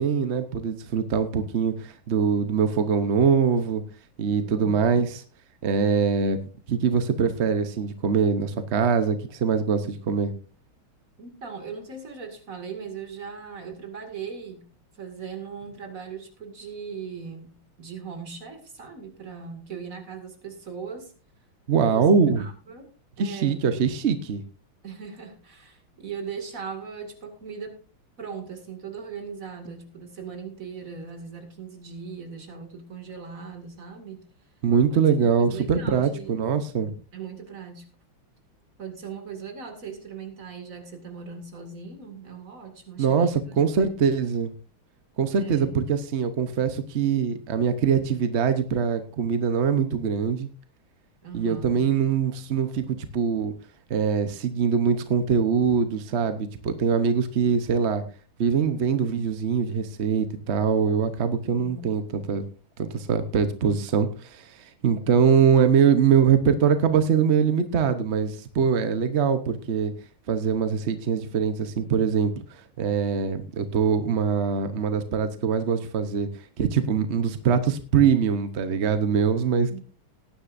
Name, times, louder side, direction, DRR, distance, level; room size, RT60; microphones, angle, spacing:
voice 1, 0.0-3.8 4.2-5.2 5.6-6.4 6.7-10.3 21.7-22.4 23.2-24.4 34.6-37.0 43.0-44.5 45.2-50.5 51.3-53.5 53.9-58.0 58.4-62.0 62.3-62.4 62.8-69.9 70.3-76.3 76.6-79.8, right 6 dB, 55° right, 0.7 m, -23 dB
voice 2, 4.4-5.0 11.2-14.7 14.9-21.1 21.8-22.9 23.2-23.8 24.8-27.8 28.2-34.2 34.9-36.3 37.1-37.9 38.8-43.9 45.4-45.9 51.2-51.8 61.6-61.9 79.7-79.8, right 6 dB, 40° right, 2.5 m, -39 dB
19.0 x 10.0 x 2.6 m
omnidirectional pair, 2.4 m